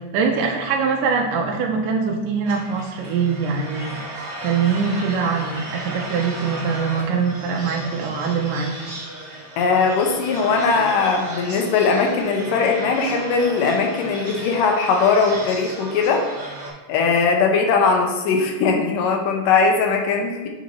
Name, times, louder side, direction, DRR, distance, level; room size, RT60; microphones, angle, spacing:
voice 1, 0.0-8.9, right 5 dB, 90° right, 1 dB, 2.2 m, -23 dB
sound 1, 2.5-16.7, right 2 dB, 40° right, 1.8 m, -35 dB
voice 2, 9.6-16.2 16.9-20.5, left 4 dB, 90° left, 2 dB, 2.5 m, -19 dB
7.5 x 4.1 x 4.4 m, 1.2 s
omnidirectional pair, 3.7 m